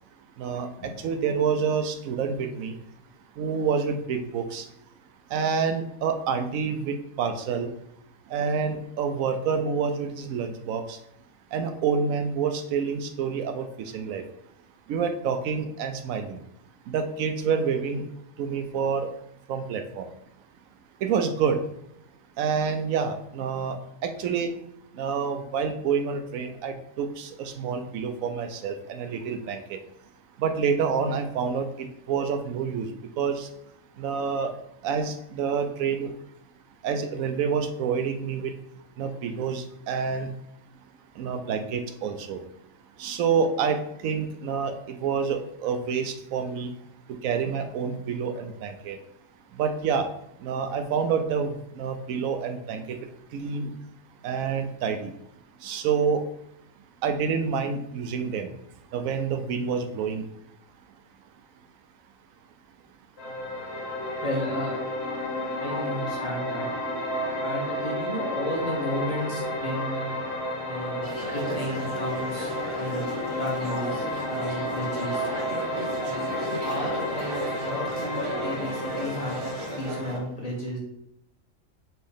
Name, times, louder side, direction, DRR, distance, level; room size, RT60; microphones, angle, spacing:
voice 1, 0.4-2.8 3.4-4.6 5.3-7.7 8.3-11.0 11.5-14.2 14.9-16.4 16.9-18.0 18.4-19.1 19.5-20.1 21.0-21.6 22.4-24.5 25.0-29.8 30.4-33.5 34.0-34.5 34.8-36.1 36.8-38.5 39.0-40.3 41.2-42.4 43.0-46.7 47.2-49.0 49.6-50.1 50.4-53.0 53.3-53.7 54.2-55.1 55.6-56.2 57.0-58.5 58.9-60.2, right 6 dB, 85° right, 7 dB, 1.0 m, -28 dB
sound 1, 63.2-80.2, left 1 dB, 55° left, 1.1 m, -31 dB
voice 2, 64.2-64.9 65.6-66.7 67.4-70.2 70.6-72.5 72.7-73.1 73.4-75.3 76.0-76.3 76.6-80.8, equal, 30° left, -4 dB, 1.2 m, -33 dB
sound 2, 71.0-80.2, right 1 dB, 35° right, 0.5 m, -36 dB
4.4 x 3.1 x 3.6 m, 0.79 s
omnidirectional pair, 1.4 m